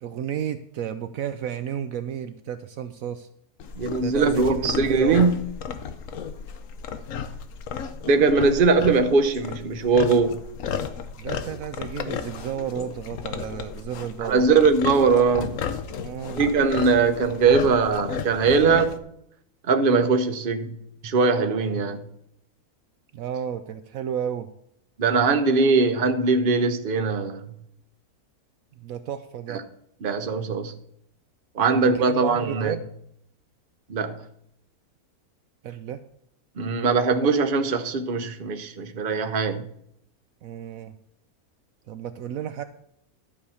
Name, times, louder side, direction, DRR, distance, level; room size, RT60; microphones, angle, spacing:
voice 1, 0.0-3.3 4.0-5.3 8.5-8.9 11.2-14.5 16.0-16.4 21.7-22.0 23.1-24.5 28.8-29.6 31.6-32.8 35.6-36.0 40.4-40.9 41.9-42.6, right 9 dB, 70° right, 1.0 m, -32 dB
sound 1, 3.6-19.0, left 7 dB, 65° left, 1.1 m, -34 dB
voice 2, 3.8-5.4 8.1-10.4 14.2-15.5 16.4-19.0 19.7-20.8 21.0-22.0 25.0-27.4 29.5-29.6 30.0-30.7 31.5-32.7 33.9-34.2 36.6-39.6, right 4 dB, 40° right, 1.0 m, -21 dB
12.0 x 4.9 x 7.1 m
omnidirectional pair, 1.6 m